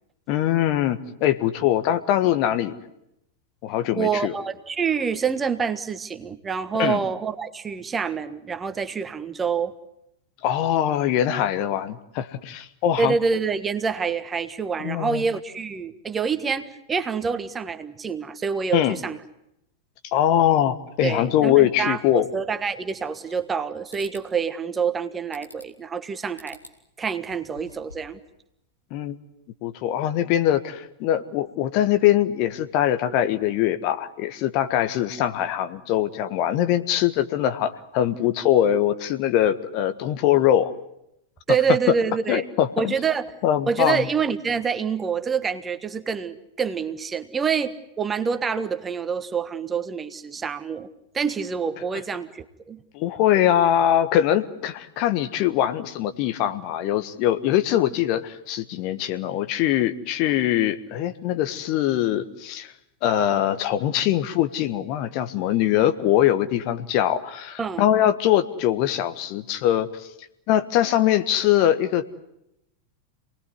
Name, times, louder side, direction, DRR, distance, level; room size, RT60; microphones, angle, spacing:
voice 1, 0.3-2.7 3.6-4.3 6.8-7.0 10.4-13.1 14.8-15.2 18.7-19.0 20.1-22.3 28.9-29.2 29.6-40.7 41.9-42.0 42.3-42.9 43.4-44.1 52.9-62.7 63.0-70.1 70.5-72.0, left 11 dB, 45° left, 11 dB, 1.4 m, -22 dB
voice 2, 4.0-9.7 13.0-19.2 21.0-26.6 27.0-28.2 41.5-42.4 42.8-43.3 43.7-50.9 51.1-52.8 67.6-67.9, right 6 dB, 20° right, 11 dB, 1.5 m, -26 dB
sound 1, 22.9-23.6 23.9-24.3 25.3-25.8 26.4-26.8 27.2-28.2, left 2 dB, 85° left, 3.0 m, -47 dB
27.5 x 20.0 x 9.6 m, 0.82 s
figure-of-eight pair, 90°, 0 cm